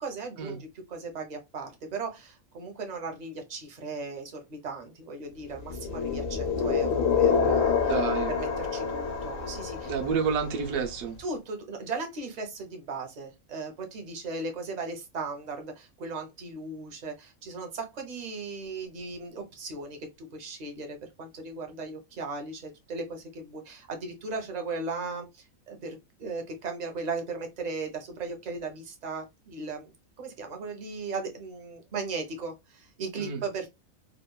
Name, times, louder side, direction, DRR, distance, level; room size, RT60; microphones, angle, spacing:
voice 1, 0.0-8.0 8.3-9.9 11.2-33.7, right 4 dB, 45° right, 0.5 m, -37 dB
sound 1, 5.7-10.6, left 6 dB, 75° left, 1.0 m, -27 dB
voice 2, 7.8-8.3 9.8-11.2 33.2-33.4, right 6 dB, 85° right, 1.0 m, -29 dB
2.9 x 2.1 x 2.2 m
omnidirectional pair, 1.4 m